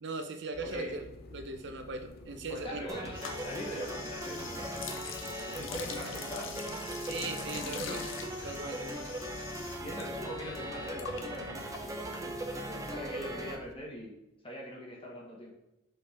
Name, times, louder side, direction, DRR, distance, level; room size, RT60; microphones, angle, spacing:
voice 1, 0.0-2.9 7.0-8.0 8.4-9.1, right 3 dB, 65° right, 7 dB, 0.7 m, -39 dB
sound 1, 0.5-13.7, left 2 dB, 55° left, 0.5 m, -51 dB
voice 2, 0.6-1.0 2.5-5.2 5.4-6.7 7.1-8.1 9.8-14.1 14.4-15.6, equal, 30° left, -2 dB, 1.3 m, -43 dB
sound 2, 2.9-13.6, right 1 dB, 15° right, 0.8 m, -39 dB
sound 3, 3.1-10.0 10.3-12.7, left 6 dB, 85° left, 0.8 m, -44 dB
6.2 x 5.4 x 3.4 m, 0.95 s
head